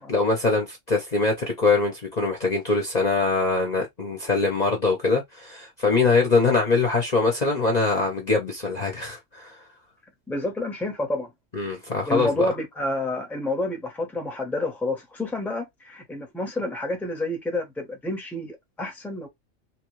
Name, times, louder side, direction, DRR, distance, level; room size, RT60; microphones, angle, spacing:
voice 1, 0.1-9.6 11.5-12.5, left 3 dB, 40° left, 0.7 m, -23 dB
voice 2, 10.3-11.3 12.1-19.3, left 2 dB, ahead, 0.7 m, -29 dB
3.0 x 2.3 x 3.0 m
omnidirectional pair, 1.3 m